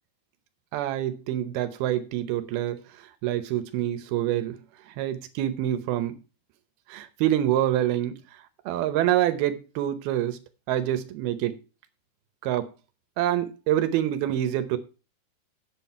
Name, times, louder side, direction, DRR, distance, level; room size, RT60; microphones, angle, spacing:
voice 1, 0.7-4.6 4.9-6.2 6.9-10.4 10.7-11.6 12.4-12.7 13.2-14.8, right 12 dB, 75° right, 2.3 m, -26 dB
9.0 x 7.9 x 5.6 m
omnidirectional pair, 5.3 m